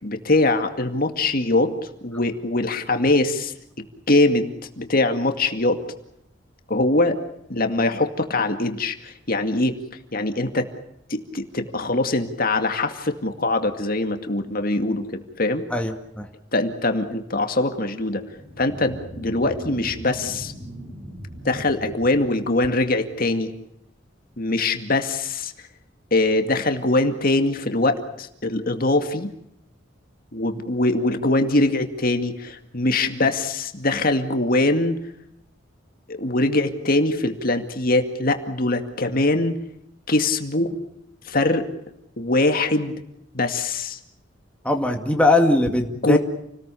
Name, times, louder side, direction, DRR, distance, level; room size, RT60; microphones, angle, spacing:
voice 1, 0.0-1.7 2.0-3.5 4.1-5.8 6.7-7.2 7.5-9.8 10.1-10.7 11.1-15.6 16.5-18.2 18.6-20.5 21.4-23.5 24.4-25.5 26.1-29.3 30.3-35.0 36.1-39.5 40.1-40.7 41.2-41.7 42.2-42.9 43.3-44.0 46.0-46.2, left 2 dB, 50° left, 6 dB, 2.2 m, -22 dB
voice 2, 15.7-16.3 44.6-46.2, left 2 dB, 5° left, 3 dB, 2.1 m, -20 dB
sound 1, 18.2-23.2, equal, 40° right, 6.4 m, -38 dB
29.5 x 19.5 x 7.0 m, 0.78 s
head